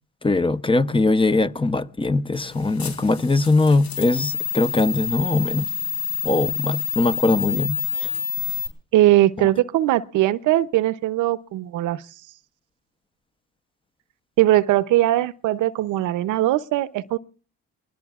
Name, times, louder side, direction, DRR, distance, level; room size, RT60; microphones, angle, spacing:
voice 1, 0.2-5.7 6.2-8.1, left 3 dB, 15° left, 0.7 m, -21 dB
sound 1, 2.3-8.7, left 6 dB, 65° left, 3.8 m, -28 dB
voice 2, 8.9-12.0 14.4-17.2, right 14 dB, 85° right, 0.7 m, -20 dB
27.5 x 20.0 x 2.4 m
cardioid pair, 90°, 30 cm